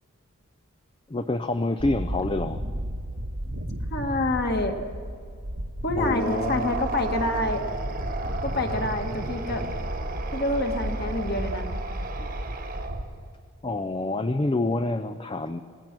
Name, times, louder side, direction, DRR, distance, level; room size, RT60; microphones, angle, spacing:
voice 1, 1.1-2.6 6.0-6.8 13.6-15.6, left 2 dB, 25° left, 9 dB, 0.5 m, -27 dB
sound 1, 1.8-13.0, equal, 85° right, 1.8 m, -33 dB
voice 2, 3.9-4.8 5.8-7.6 8.4-9.7 10.3-11.8 12.2-12.3, left 2 dB, 45° left, 4 dB, 1.8 m, -27 dB
sound 2, 6.0-13.2, right 3 dB, 40° right, 1.4 m, -35 dB
26.5 x 18.5 x 6.1 m, 2.2 s
head